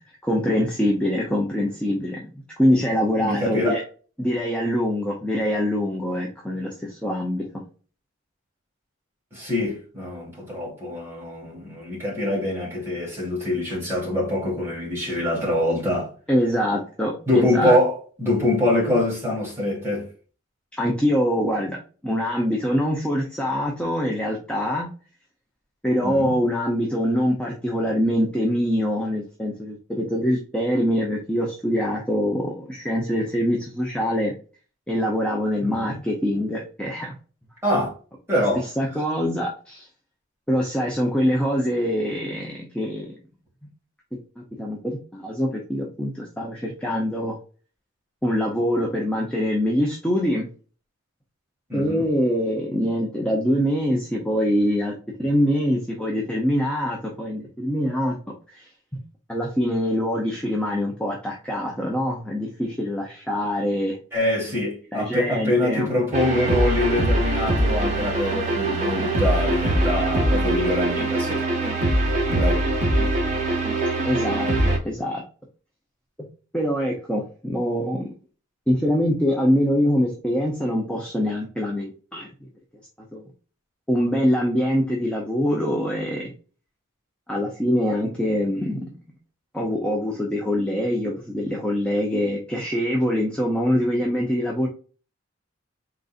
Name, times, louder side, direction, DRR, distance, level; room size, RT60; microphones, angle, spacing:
voice 1, 0.2-2.3 2.6-3.8 4.2-7.5 16.3-17.8 20.8-24.9 25.8-34.3 34.9-37.1 38.8-39.9 40.5-43.2 44.6-47.4 48.2-50.5 51.7-58.2 58.5-58.7 59.3-64.0 64.9-65.9 74.0-74.5 74.8-75.2 76.2-76.3 76.5-78.1 78.7-82.3 83.1-83.2 83.9-86.3 87.3-88.8 89.5-94.7, equal, 5° left, 0.7 m, -24 dB
voice 2, 3.2-3.8 9.3-16.1 17.3-20.1 26.0-26.4 35.6-36.0 37.6-37.9 38.3-38.6 51.7-52.1 64.1-71.7 72.0-72.6, left 1 dB, 10° right, 2.1 m, -24 dB
sound 1, 66.1-74.8, right 1 dB, 35° right, 1.1 m, -22 dB
4.5 x 3.9 x 2.5 m
head